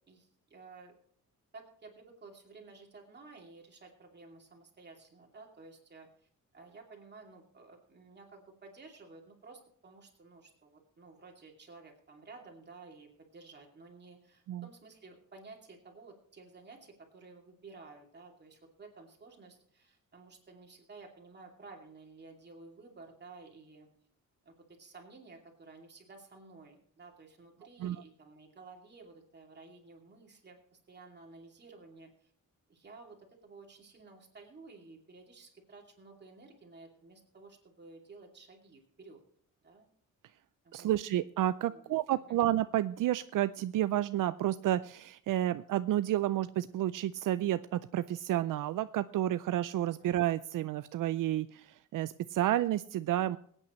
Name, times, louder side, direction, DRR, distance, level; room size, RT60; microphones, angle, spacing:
voice 1, 0.1-0.9 1.5-23.9 24.4-32.3 32.7-39.2 39.6-39.9 40.6-40.9 41.7-41.9 42.3-42.4, right 3 dB, 35° right, 1 dB, 2.6 m, -54 dB
voice 2, 40.7-53.4, right 13 dB, 80° right, 13 dB, 0.5 m, -31 dB
23.0 x 9.0 x 3.1 m, 0.64 s
wide cardioid pair, 170°, 32 cm